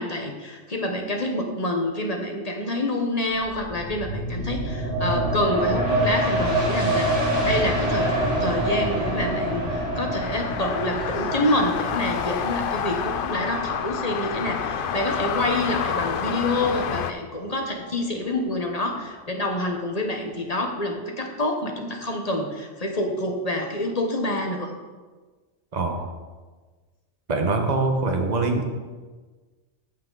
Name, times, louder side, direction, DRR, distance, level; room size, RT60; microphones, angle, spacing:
voice 1, 0.0-8.1 8.4-24.7, left 1 dB, 35° left, 3 dB, 1.0 m, -27 dB
sound 1, 3.3-16.6 17.0-17.1, right 1 dB, 65° right, 3.5 m, -27 dB
sound 2, 10.2-17.1, left 7 dB, 60° left, 0.6 m, -29 dB
voice 2, 25.7-26.1 27.3-28.7, right 3 dB, 40° right, 3 dB, 1.2 m, -23 dB
14.5 x 5.7 x 3.9 m, 1.4 s
omnidirectional pair, 1.2 m